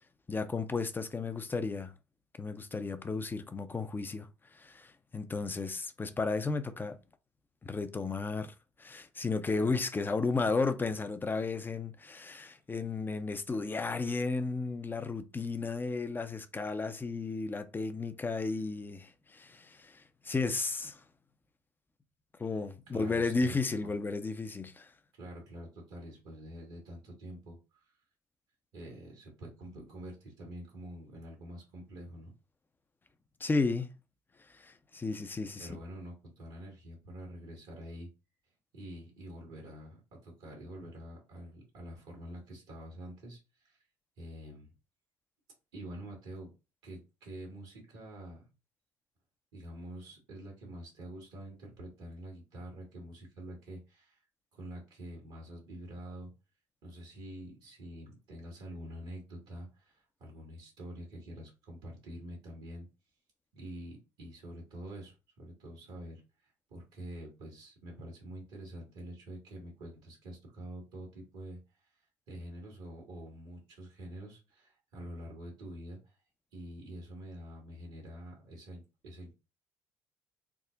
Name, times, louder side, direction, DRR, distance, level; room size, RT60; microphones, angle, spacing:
voice 1, 0.3-1.9 2.4-4.3 4.5-7.0 7.6-8.5 8.8-21.0 22.4-24.9 33.4-33.9 34.6-35.7, left 3 dB, 20° left, 0.6 m, -33 dB
voice 2, 22.9-23.9 25.1-27.8 28.7-32.3 35.1-35.2 35.6-38.1 38.7-43.8 44.2-44.7 45.7-46.5 46.8-48.5 49.5-54.2 54.5-56.3 56.8-62.9 63.5-71.9 72.3-76.1 76.5-79.3, right 1 dB, 75° right, 1.6 m, -46 dB
3.5 x 2.1 x 3.8 m
hypercardioid pair, 55°, 9 cm